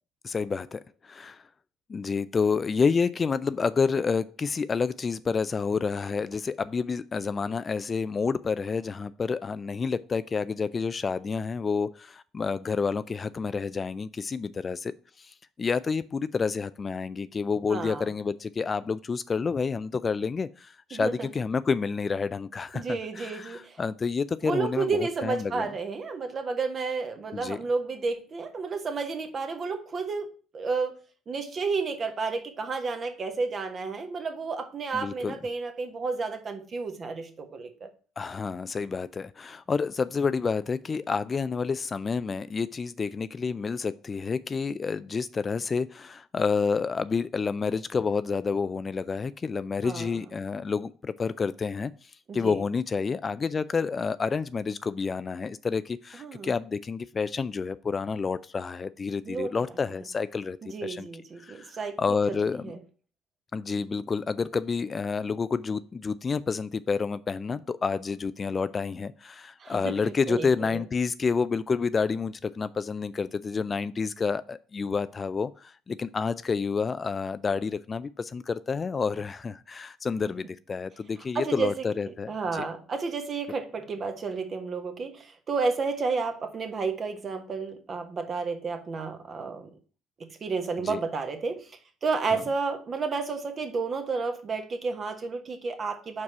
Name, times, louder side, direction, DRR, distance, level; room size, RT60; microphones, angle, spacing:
voice 1, 0.2-1.4 1.9-14.9 15.2-24.9 25.2-25.7 27.3-27.6 34.9-35.4 38.2-61.1 61.4-61.7 62.0-62.7 63.5-82.7 90.8-91.0 92.3-92.4, left 5 dB, 35° left, 0.3 m, -29 dB
voice 2, 17.7-18.1 20.9-21.3 22.7-23.8 24.4-31.0 31.3-37.9 49.8-50.2 52.3-52.6 56.2-56.5 59.2-59.5 60.6-62.8 69.6-70.8 81.3-81.8 82.3-89.7 90.2-96.2, right 4 dB, 40° right, 1.2 m, -31 dB
4.7 x 4.7 x 5.6 m
hypercardioid pair, 60°, 0 cm